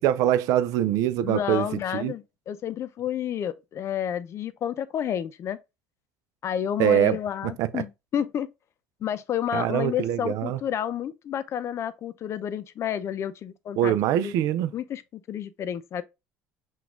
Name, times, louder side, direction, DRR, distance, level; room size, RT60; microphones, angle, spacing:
voice 1, 0.0-1.7 1.9-2.1 6.8-7.2 7.4-7.8 9.5-10.6 13.8-14.7, right 11 dB, 65° right, 0.5 m, -23 dB
voice 2, 1.2-5.6 6.4-8.5 9.0-13.9 14.2-14.3 14.7-16.0, left 9 dB, 50° left, 0.5 m, -30 dB
5.9 x 2.4 x 3.6 m
hypercardioid pair, 75°, 6 cm